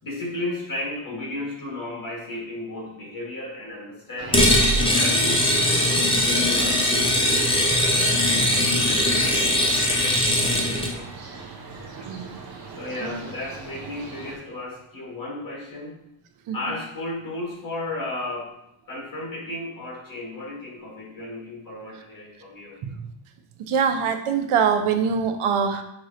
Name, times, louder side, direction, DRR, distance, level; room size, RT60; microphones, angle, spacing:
voice 1, 0.0-4.4 4.9-11.1 11.4-11.5 11.8-12.1 12.4-12.5 12.8-16.0 16.5-18.5 18.9-22.8, left 1 dB, 40° left, -3 dB, 1.7 m, -34 dB
sound 1, 4.2-14.4, right 3 dB, 50° right, 0.6 m, -39 dB
sound 2, 4.3-10.9, left 1 dB, 10° left, 0.5 m, -20 dB
voice 2, 12.0-12.4 13.0-13.2 16.5-16.6 22.8-23.1 23.6-25.8, right 6 dB, 90° right, 7 dB, 0.6 m, -24 dB
6.1 x 3.0 x 2.7 m, 0.81 s
wide cardioid pair, 130°, 49 cm